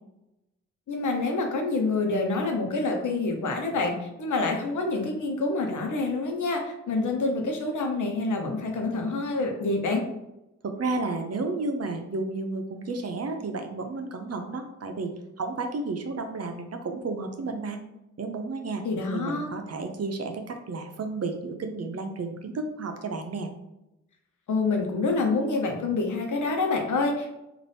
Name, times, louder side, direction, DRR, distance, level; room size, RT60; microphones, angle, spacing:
voice 1, 0.9-10.0 18.8-19.5 24.5-27.3, left 3 dB, 90° left, 2 dB, 0.8 m, -27 dB
voice 2, 10.6-15.1 15.4-17.8 18.2-18.8 19.1-23.5, right 3 dB, 55° right, 5 dB, 0.7 m, -32 dB
4.0 x 2.5 x 3.4 m, 0.89 s
cardioid pair, 70°, 29 cm